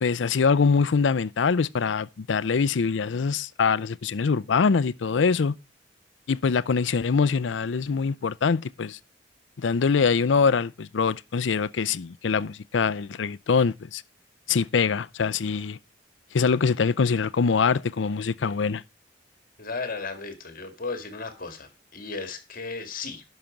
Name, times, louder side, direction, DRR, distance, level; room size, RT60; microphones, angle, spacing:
voice 1, 0.0-5.6 6.3-9.0 9.6-14.0 14.5-15.8 16.3-18.8, left 5 dB, 80° left, 0.5 m, -24 dB
voice 2, 19.6-23.2, left 4 dB, 50° left, 1.9 m, -35 dB
11.0 x 6.0 x 5.0 m
head